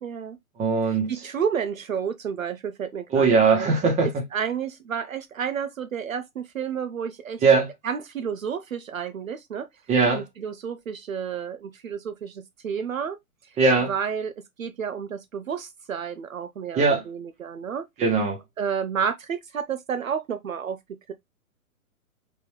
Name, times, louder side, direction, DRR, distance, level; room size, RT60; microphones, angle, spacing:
voice 1, 0.0-0.4 0.8-3.7 4.0-7.4 7.8-9.7 10.1-13.2 13.4-13.5 13.9-14.3 14.6-17.8 18.6-20.8 21.1-21.2, right 7 dB, 65° right, 0.7 m, -31 dB
voice 2, 0.6-1.1 3.1-4.1 7.4-7.7 9.9-10.2 13.6-13.9 16.7-17.0 18.0-18.4, right 4 dB, 15° right, 1.3 m, -20 dB
4.1 x 3.7 x 3.1 m
figure-of-eight pair, 115°, 44 cm